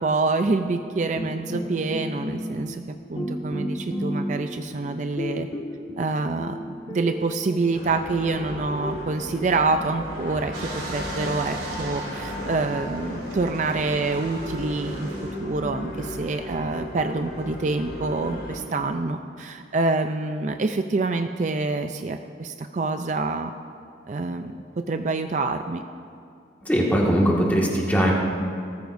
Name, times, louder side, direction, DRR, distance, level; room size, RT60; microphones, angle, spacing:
voice 1, 0.0-2.8 3.1-5.5 6.0-15.1 15.4-23.5 24.1-25.8, right 3 dB, 40° right, 7 dB, 0.4 m, -26 dB
sound 1, 1.1-2.9 3.1-4.7 5.2-7.8, equal, 25° left, 1.5 m, -32 dB
sound 2, 7.7-18.6, left 1 dB, 75° left, 2.8 m, -35 dB
sound 3, 10.5-15.5 16.1-16.2, right 2 dB, 65° right, 2.9 m, -38 dB
voice 2, 26.7-28.1, equal, 10° left, -4 dB, 1.8 m, -20 dB
19.0 x 14.0 x 2.6 m, 2.3 s
head